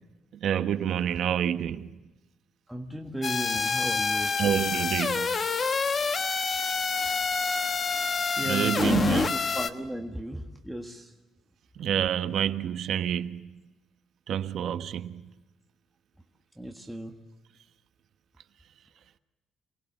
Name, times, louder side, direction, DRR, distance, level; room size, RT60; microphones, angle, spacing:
voice 1, 0.4-1.9 4.4-5.4 8.4-9.3 11.8-13.6 14.3-15.3, right 10 dB, 60° right, 1.2 m, -28 dB
voice 2, 2.7-4.5 8.4-11.1 16.6-17.1, right 1 dB, 5° right, 1.5 m, -35 dB
sound 1, 3.2-9.7, left 4 dB, 30° left, 1.4 m, -27 dB
28.0 x 20.0 x 7.3 m
cardioid pair, 150°, 0 cm